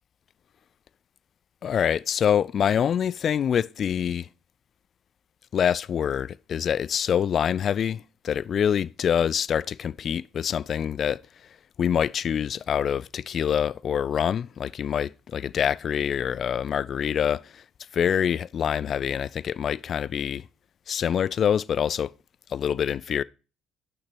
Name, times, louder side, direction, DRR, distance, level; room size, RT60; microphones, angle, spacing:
voice 1, 1.6-4.3 5.5-11.2 11.8-17.6 17.9-20.4 20.9-22.1 22.5-23.2, left 8 dB, 50° left, 0.3 m, -25 dB
5.9 x 5.8 x 6.1 m
hypercardioid pair, 55°, 0 cm